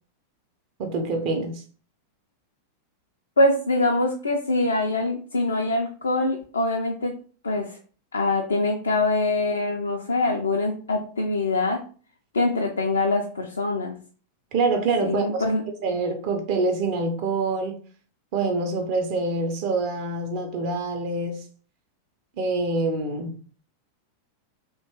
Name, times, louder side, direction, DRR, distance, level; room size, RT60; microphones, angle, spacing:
voice 1, 0.8-1.6 14.5-15.4 15.8-17.8 18.3-21.4 22.4-23.4, right 3 dB, 45° right, 0.5 m, -25 dB
voice 2, 3.4-7.2 7.4-7.8 8.1-11.8 12.3-13.9 15.0-15.6, left 2 dB, 75° left, 0.3 m, -24 dB
2.8 x 2.2 x 2.7 m
figure-of-eight pair, 90°, 0 cm